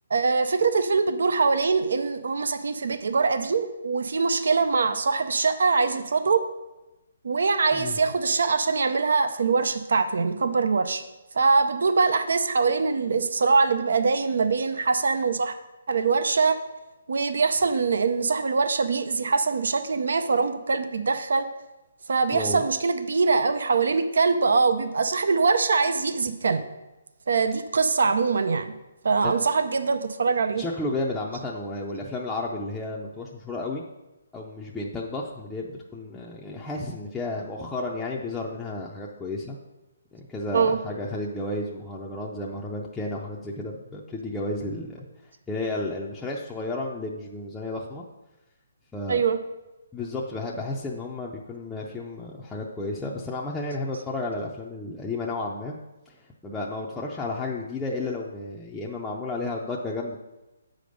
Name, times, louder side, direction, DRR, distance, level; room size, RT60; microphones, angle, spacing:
voice 1, 0.1-6.5 7.2-11.0 11.3-15.5 15.9-16.6 17.1-21.5 22.1-26.6 27.3-28.7 29.0-30.6 40.5-40.8 49.1-49.4, right 4 dB, 75° right, 10 dB, 0.5 m, -23 dB
voice 2, 22.3-22.6 29.2-29.3 30.6-33.8 34.3-39.6 40.1-45.0 45.5-48.0 48.9-49.2 49.9-55.7 56.1-56.2 56.4-60.2, left 2 dB, 5° left, -5 dB, 0.5 m, -32 dB
7.6 x 5.1 x 5.2 m, 1.0 s
hypercardioid pair, 160°, 0 cm